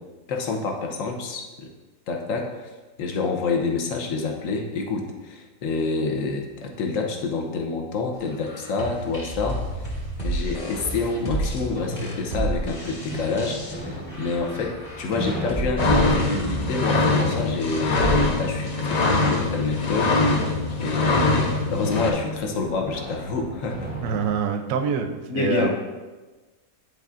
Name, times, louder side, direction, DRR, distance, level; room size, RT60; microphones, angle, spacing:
voice 1, 0.3-1.7 2.1-2.7 3.0-9.6 10.2-18.1 18.4-23.9 25.3-25.7, left 4 dB, 60° left, 3 dB, 1.1 m, -28 dB
sound 1, 8.3-20.2, right 1 dB, 30° left, 1.4 m, -32 dB
sound 2, 11.4-24.4, equal, 10° right, 0.7 m, -34 dB
sound 3, 15.8-22.1, left 3 dB, 85° left, 0.3 m, -23 dB
voice 2, 24.0-25.1 25.3-25.7, right 7 dB, 70° right, 6 dB, 0.9 m, -25 dB
10.0 x 4.1 x 2.5 m, 1.2 s
omnidirectional pair, 1.7 m